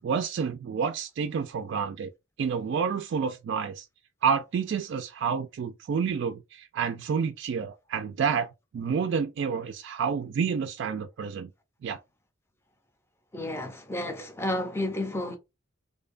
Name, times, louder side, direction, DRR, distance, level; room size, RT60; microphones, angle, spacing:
voice 1, 0.0-2.1 2.4-3.8 4.2-11.5 11.8-12.0, right 6 dB, 65° right, 0.3 m, -29 dB
voice 2, 13.3-15.4, left 1 dB, 15° left, 0.5 m, -31 dB
2.6 x 2.1 x 2.4 m
head